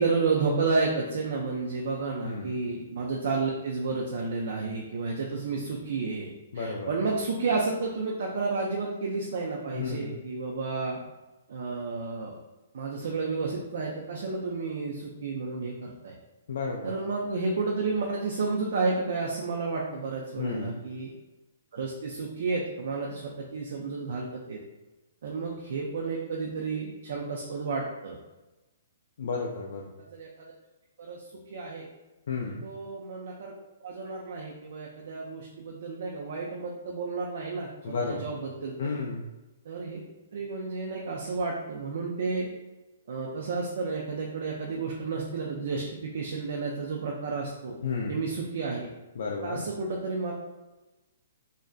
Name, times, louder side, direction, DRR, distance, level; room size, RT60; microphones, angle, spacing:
voice 1, 0.0-6.3 6.5-11.0 11.5-12.3 12.7-16.1 16.8-21.1 21.7-24.6 25.2-28.2 30.1-30.3 31.0-31.2 31.5-31.9 32.6-33.5 33.8-39.0 39.7-40.0 40.3-42.5 43.1-47.8 48.1-48.9 49.4-50.3, right 4 dB, 65° right, -1 dB, 0.3 m, -31 dB
voice 2, 2.2-2.6 6.5-7.0 9.7-10.2 16.5-17.0 20.4-20.8 29.2-29.9 32.3-32.7 37.8-38.3 38.8-39.2 47.8-48.2 49.2-49.6, left 4 dB, 70° left, -1 dB, 0.3 m, -32 dB
2.5 x 2.1 x 2.3 m, 1.1 s
hypercardioid pair, 135°, 0 cm